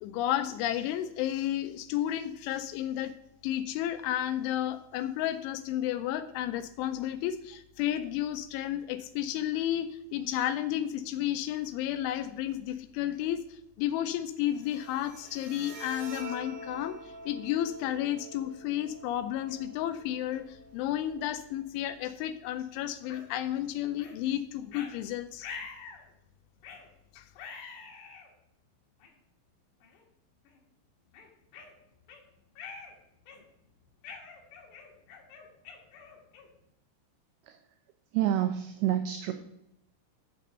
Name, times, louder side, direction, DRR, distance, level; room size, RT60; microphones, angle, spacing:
voice 1, 0.0-3.1 3.4-25.5 27.1-27.3, left 12 dB, 85° left, 11 dB, 2.8 m, -32 dB
Bowed string instrument, 14.5-21.5, right 1 dB, 55° right, 3.8 m, -47 dB
sound 1, 23.1-23.2 24.0-24.2 24.7-24.9 25.4-26.0 26.6-26.9 27.4-28.3 29.0-29.1 29.8-30.0 30.5-30.6 31.1-32.2 32.6-32.9 33.3-33.6 34.0-36.6, left 5 dB, 65° left, 3.4 m, -45 dB
voice 2, 38.1-39.3, right 11 dB, 85° right, 7 dB, 2.5 m, -28 dB
7.6 x 6.5 x 6.7 m, 0.82 s
omnidirectional pair, 5.8 m